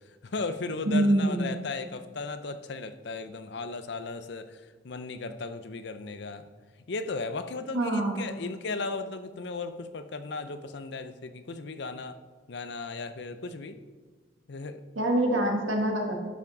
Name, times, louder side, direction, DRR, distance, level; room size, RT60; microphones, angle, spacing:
voice 1, 0.2-6.5 6.9-12.2 12.5-13.8 14.5-14.8, left 3 dB, 60° left, 10 dB, 0.6 m, -36 dB
voice 2, 0.8-1.5 7.7-8.3 14.9-16.1, right 1 dB, 85° right, 1 dB, 1.4 m, -25 dB
11.5 x 5.9 x 3.9 m, 1.4 s
head